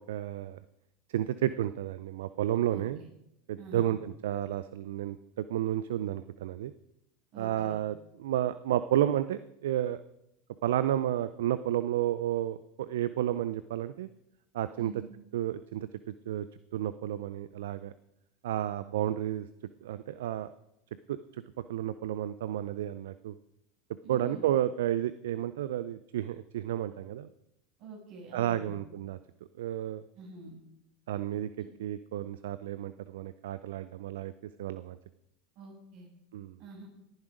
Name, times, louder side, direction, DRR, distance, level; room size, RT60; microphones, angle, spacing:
voice 1, 0.1-0.6 1.1-3.0 3.5-6.7 7.4-10.0 10.6-14.1 14.5-14.9 15.3-15.9 16.3-16.5 16.7-17.9 18.4-19.5 19.8-20.5 21.1-21.4 21.7-23.4 24.1-27.3 28.3-29.2 29.6-30.0 31.1-34.3 34.6-35.0 36.3-36.6, right 12 dB, 75° right, 14 dB, 0.5 m, -31 dB
voice 2, 2.7-3.1 3.6-3.9 7.3-7.8 14.8-15.1 24.0-24.5 27.8-28.8 30.2-30.6 31.6-31.7 35.6-36.1 36.6-36.9, right 3 dB, 60° right, -1 dB, 7.7 m, -46 dB
18.5 x 10.5 x 5.1 m, 0.82 s
hypercardioid pair, 85°, 0 cm